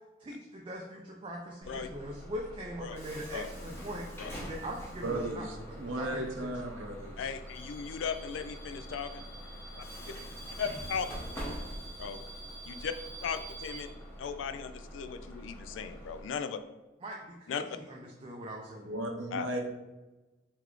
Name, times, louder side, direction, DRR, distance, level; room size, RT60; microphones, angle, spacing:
voice 1, 0.2-6.2 17.0-18.9, equal, 30° right, -1 dB, 0.4 m, -42 dB
Bus / Alarm, 1.6-16.2, equal, 10° left, 0.9 m, -44 dB
voice 2, 5.0-7.3 18.8-19.6, right 1 dB, 80° right, 2 dB, 0.7 m, -36 dB
voice 3, 7.2-9.3 10.6-11.1 12.0-12.2 12.6-12.9 13.2-13.9 14.2-16.6 17.5-17.6 19.3-19.6, left 6 dB, 75° left, 10 dB, 0.3 m, -37 dB
3.9 x 3.3 x 3.1 m, 1.1 s
head